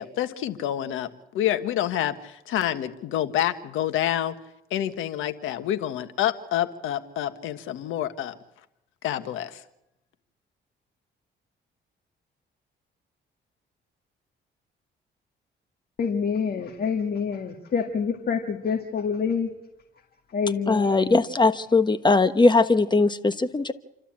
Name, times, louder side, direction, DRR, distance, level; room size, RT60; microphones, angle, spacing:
voice 1, 0.0-4.4 4.7-8.4 9.0-9.6, left 11 dB, 85° left, 1.5 m, -28 dB
voice 2, 16.0-19.5 20.3-21.2, left 6 dB, 50° left, 2.0 m, -27 dB
voice 3, 20.7-23.7, left 3 dB, 20° left, 1.3 m, -20 dB
28.5 x 12.5 x 8.8 m
cardioid pair, 90°, 20 cm